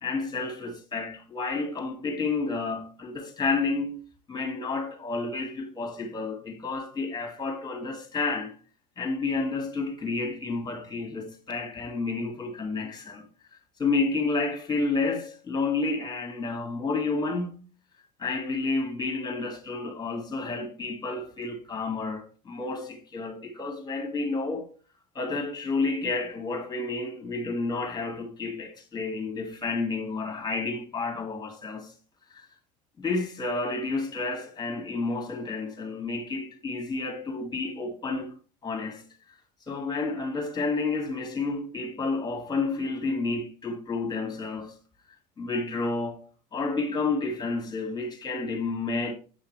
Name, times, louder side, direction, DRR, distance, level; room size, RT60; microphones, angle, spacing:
voice 1, 0.0-4.0 4.3-8.5 9.0-13.2 13.8-17.6 18.2-24.7 25.1-31.9 32.3-32.5 33.0-38.3 38.6-39.0 39.7-44.7 45.4-49.1, left 3 dB, 20° left, 2.0 m, -30 dB
8.2 x 5.6 x 3.2 m
hypercardioid pair, 80°, 21 cm